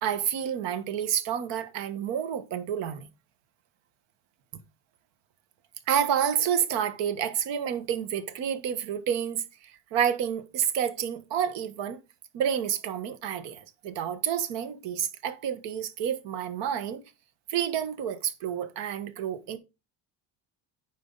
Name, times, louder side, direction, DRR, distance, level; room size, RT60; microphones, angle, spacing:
voice 1, 0.0-3.0 5.9-12.0 12.3-17.0 17.5-19.6, right 9 dB, 75° right, 1.5 m, -29 dB
9.4 x 6.0 x 4.0 m
cardioid pair, 135°, 43 cm